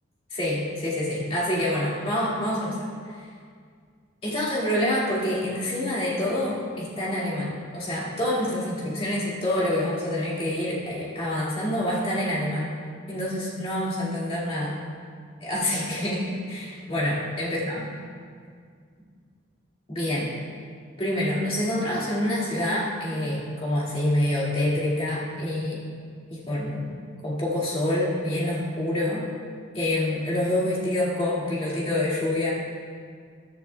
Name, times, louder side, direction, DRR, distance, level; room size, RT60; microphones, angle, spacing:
voice 1, 0.3-2.8 4.2-12.7 13.1-14.7 15.4-17.9 19.9-20.3 21.0-25.8 26.3-26.9 27.2-29.3 29.7-32.5, left 1 dB, 30° left, -7 dB, 2.2 m, -27 dB
14.0 x 10.5 x 2.3 m, 2.1 s
head